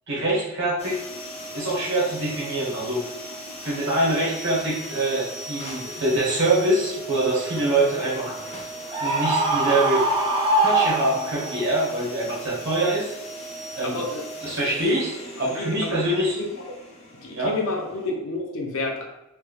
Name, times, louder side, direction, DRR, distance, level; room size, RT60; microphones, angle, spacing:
voice 1, 0.1-0.9 1.5-3.0 3.6-8.4 9.0-10.0 10.6-13.1 13.7-14.0 14.4-15.1 15.4-16.4 17.3-17.5, right 2 dB, 60° right, -5 dB, 1.4 m, -24 dB
sound 1, 0.8-18.1, right 1 dB, 30° left, 0.6 m, -38 dB
Screaming, 8.9-11.6, right 2 dB, 25° right, 0.4 m, -22 dB
voice 2, 13.8-14.7 15.6-16.0 16.4-16.5 17.2-19.0, left 2 dB, 80° left, 0 dB, 0.7 m, -30 dB
3.2 x 3.2 x 2.3 m, 0.88 s
head